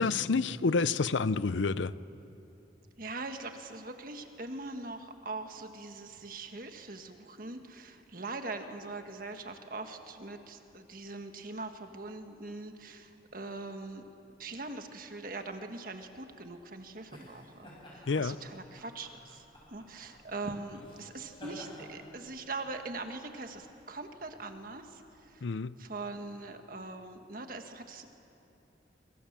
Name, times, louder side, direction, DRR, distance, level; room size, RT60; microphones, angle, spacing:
voice 1, 0.0-1.9 18.1-18.4 25.4-25.7, left 4 dB, 85° left, 0.6 m, -28 dB
voice 2, 3.0-14.0 14.4-25.4 25.8-28.1, right 3 dB, 50° right, 1.7 m, -42 dB
sound 1, 16.1-25.2, equal, 25° left, 7.0 m, -53 dB
25.0 x 23.5 x 7.4 m
head